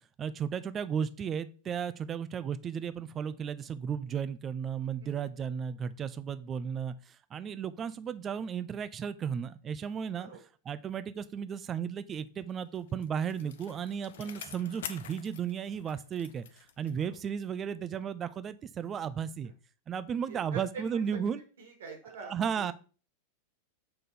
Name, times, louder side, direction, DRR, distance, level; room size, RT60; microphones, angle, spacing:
voice 1, 0.2-10.3 10.7-19.5 19.9-21.4 22.3-22.7, right 7 dB, 25° right, 13 dB, 0.5 m, -34 dB
Bicycle, 12.5-17.4 17.8-17.9, left 9 dB, 60° left, 0.6 m, -47 dB
voice 2, 20.3-21.2 21.6-22.7, right 5 dB, 60° right, 3 dB, 2.1 m, -45 dB
6.6 x 3.8 x 4.2 m, 0.37 s
figure-of-eight pair, 90°, 0 cm